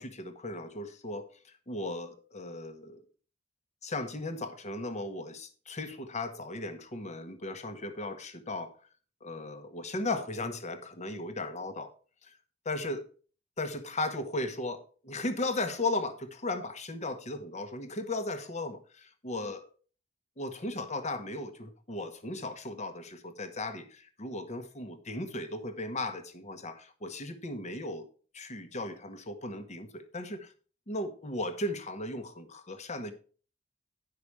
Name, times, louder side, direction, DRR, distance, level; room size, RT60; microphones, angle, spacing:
voice 1, 0.0-3.0 3.8-8.8 9.2-11.9 12.2-12.3 12.6-13.0 13.6-19.6 20.4-28.1 28.3-30.5 30.9-33.1, left 2 dB, 35° left, 1.1 m, -36 dB
10.0 x 5.9 x 4.8 m
head